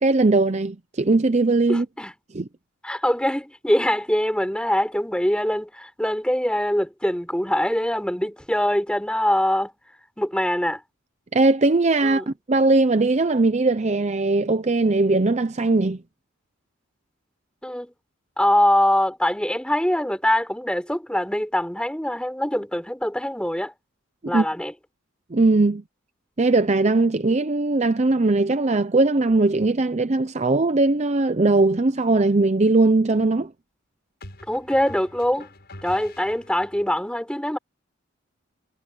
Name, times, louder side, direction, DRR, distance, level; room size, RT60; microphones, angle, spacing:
voice 1, 0.0-1.8 2.3-2.5 11.3-16.0 24.3-24.4 25.3-25.8 26.4-33.5, right 2 dB, 35° right, 0.6 m, -20 dB
voice 2, 1.7-2.1 2.8-9.7 10.2-10.8 12.0-12.3 17.6-17.9 18.4-23.7 24.3-24.7 34.5-35.5 35.8-37.6, left 1 dB, 5° left, 4.2 m, -23 dB
sound 1, 31.5-31.8 34.2-36.9, left 1 dB, 50° left, 7.4 m, -44 dB
head